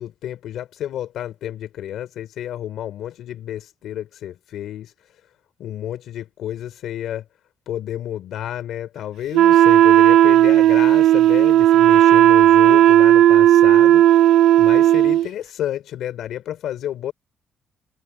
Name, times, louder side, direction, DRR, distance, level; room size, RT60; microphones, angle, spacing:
voice 1, 0.0-4.9 5.6-7.2 7.7-17.1, left 11 dB, 80° left, 3.2 m, -31 dB
Wind instrument woodwind instrument, 9.3-15.3, right 12 dB, 85° right, 0.4 m, -13 dB
cardioid pair, 90°, 0 cm